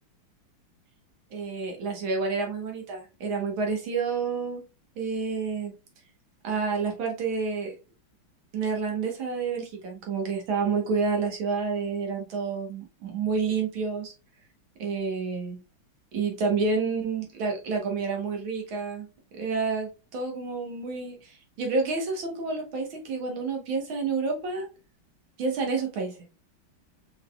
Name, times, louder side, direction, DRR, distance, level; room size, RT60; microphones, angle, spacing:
voice 1, 1.3-4.6 5.0-5.7 6.4-7.8 8.5-14.1 14.8-15.6 16.1-19.1 19.3-24.7 25.4-26.2, right 4 dB, 75° right, 2 dB, 2.1 m, -29 dB
5.0 x 4.1 x 2.3 m, 0.32 s
omnidirectional pair, 2.2 m